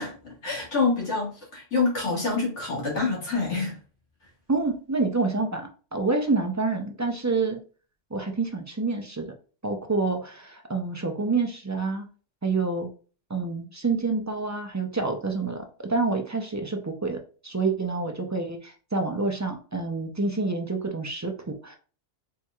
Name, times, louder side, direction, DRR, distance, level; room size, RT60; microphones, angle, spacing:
voice 1, 0.0-3.8, left 4 dB, 85° left, -3 dB, 2.2 m, -27 dB
voice 2, 4.5-7.6 8.1-9.3 9.6-12.1 12.4-12.9 13.3-21.8, right 3 dB, 25° right, 3 dB, 0.4 m, -28 dB
4.5 x 4.0 x 2.4 m, 0.37 s
omnidirectional pair, 1.2 m